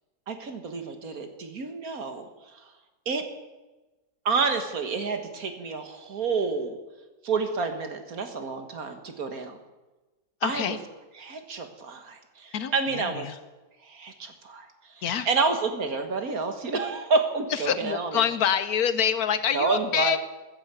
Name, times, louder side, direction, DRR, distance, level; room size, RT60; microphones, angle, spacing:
voice 1, 0.3-2.3 3.1-3.3 4.3-6.8 7.2-9.6 10.4-10.8 11.2-13.3 13.8-14.7 15.0-18.2 19.5-20.2, right 4 dB, 55° right, 6 dB, 1.9 m, -29 dB
voice 2, 10.4-10.8 12.5-13.3 15.0-15.3 17.5-20.2, left 8 dB, 65° left, 12 dB, 1.2 m, -26 dB
14.5 x 10.0 x 8.2 m, 1.2 s
omnidirectional pair, 1.8 m